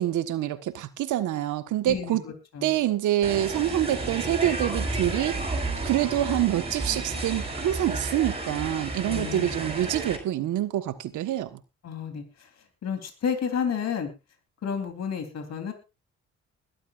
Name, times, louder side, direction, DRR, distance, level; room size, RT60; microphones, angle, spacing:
voice 1, 0.0-2.2 2.6-5.3 5.8-11.6, right 13 dB, 80° right, 1.4 m, -26 dB
voice 2, 1.8-2.7 9.0-9.5 11.8-12.2 12.8-14.1 14.6-15.7, left 7 dB, 60° left, 3.6 m, -31 dB
sound 1, 3.2-10.2, right 2 dB, 20° right, 5.6 m, -32 dB
21.0 x 12.0 x 2.5 m
cardioid pair, 90°, 30 cm